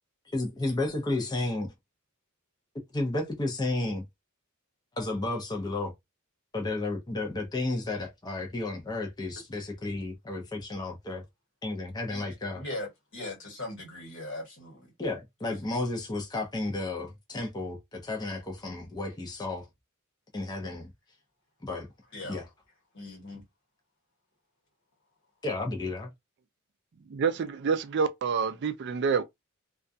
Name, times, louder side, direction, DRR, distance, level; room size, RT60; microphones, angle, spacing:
voice 1, 0.3-1.7 2.9-4.1 5.0-5.9 6.5-11.2 11.6-12.6 15.0-19.7 20.3-20.9 21.6-21.9 22.3-22.5 25.4-26.1, left 2 dB, 20° left, 0.6 m, -32 dB
voice 2, 12.5-14.9 15.5-15.6 22.1-22.4 22.9-23.4, left 1 dB, 60° left, 1.2 m, -39 dB
voice 3, 27.1-29.2, right 6 dB, 55° right, 0.4 m, -27 dB
2.3 x 2.2 x 2.6 m
head